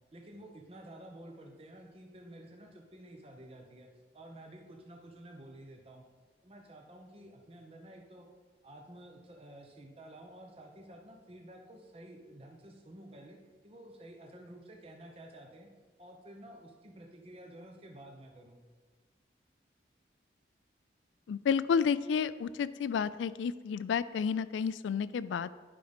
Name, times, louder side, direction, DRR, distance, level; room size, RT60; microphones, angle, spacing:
voice 1, 0.1-3.9 4.1-6.0 6.4-8.3 8.6-13.4 13.6-15.7 16.0-18.6, right 1 dB, 30° right, 2 dB, 0.7 m, -51 dB
voice 2, 21.3-25.5, left 6 dB, 85° left, 16 dB, 0.3 m, -31 dB
10.5 x 5.1 x 3.5 m, 1.4 s
head